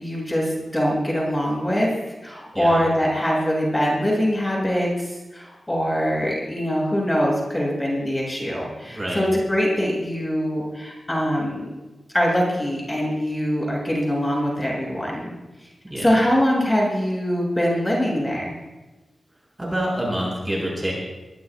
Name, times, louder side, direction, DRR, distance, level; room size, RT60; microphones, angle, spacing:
voice 1, 0.0-11.6 12.1-15.3 15.6-15.7 16.0-18.6, equal, 15° left, -3 dB, 7.3 m, -23 dB
voice 2, 8.9-9.3 15.8-16.1 19.6-20.9, right 1 dB, 20° right, -3 dB, 7.0 m, -27 dB
23.0 x 20.5 x 2.5 m, 1.1 s
wide cardioid pair, 70°, 0 cm